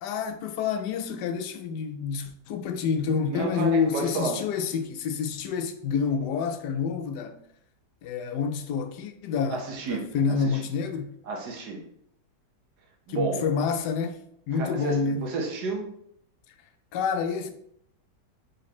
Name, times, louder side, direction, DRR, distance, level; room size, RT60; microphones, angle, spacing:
voice 1, 0.0-7.4 8.0-11.1 13.1-14.2 14.5-15.2 16.9-17.5, left 6 dB, 75° left, 1.1 m, -28 dB
voice 2, 3.3-4.4 9.5-10.6 11.2-11.8 13.1-13.5 14.5-15.9, right 3 dB, 70° right, 1.4 m, -31 dB
4.0 x 3.2 x 4.1 m
omnidirectional pair, 1.9 m